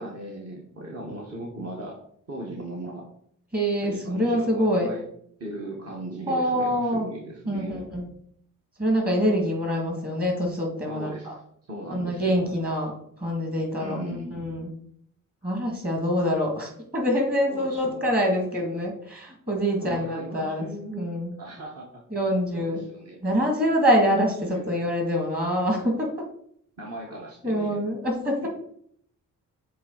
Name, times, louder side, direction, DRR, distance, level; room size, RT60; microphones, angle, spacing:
voice 1, 0.0-2.0 2.3-3.0 3.8-5.0 5.4-7.9 10.9-11.4 11.7-12.5 13.8-14.4 17.5-18.0 19.8-21.1 21.4-22.0 22.5-23.2 24.4-24.8 26.8-27.8, right 1 dB, 45° right, -2 dB, 1.4 m, -37 dB
voice 2, 3.5-4.9 6.3-7.1 7.5-8.1 8.8-11.3 11.9-12.9 13.2-14.7 15.4-21.3 22.1-22.8 23.2-26.2 27.4-28.5, equal, 30° right, 1 dB, 2.4 m, -25 dB
7.6 x 3.4 x 4.0 m, 0.66 s
cardioid pair, 80°, 33 cm